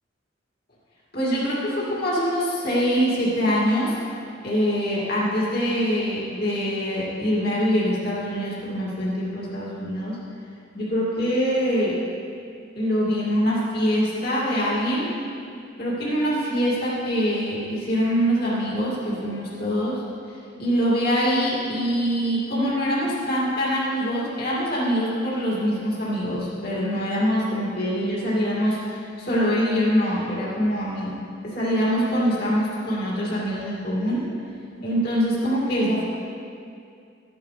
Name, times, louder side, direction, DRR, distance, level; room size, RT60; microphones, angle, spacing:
voice 1, 1.1-4.0 4.4-10.2 10.7-12.0 12.8-15.2 15.8-20.0 20.6-31.2 31.4-34.3 34.8-36.0, equal, 55° left, -7 dB, 2.5 m, -24 dB
13.0 x 10.5 x 3.4 m, 2.4 s
head